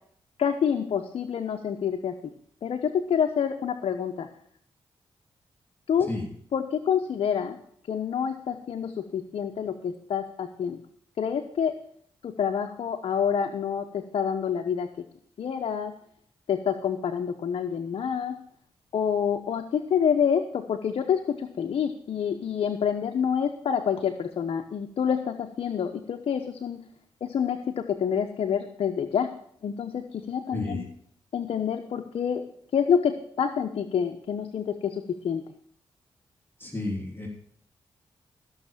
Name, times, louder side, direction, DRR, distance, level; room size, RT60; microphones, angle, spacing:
voice 1, 0.4-2.2 2.6-4.3 5.9-6.1 6.5-7.6 7.9-10.8 11.2-11.7 12.2-14.9 15.4-15.9 16.5-18.4 18.9-26.8 27.2-29.3 29.6-30.9 31.3-32.4 32.7-35.4, left 7 dB, 75° left, 6 dB, 0.9 m, -27 dB
voice 2, 30.5-30.8 36.6-37.3, left 2 dB, 20° left, 0 dB, 3.2 m, -31 dB
14.5 x 6.5 x 7.3 m, 0.64 s
cardioid pair, 55°, 10 cm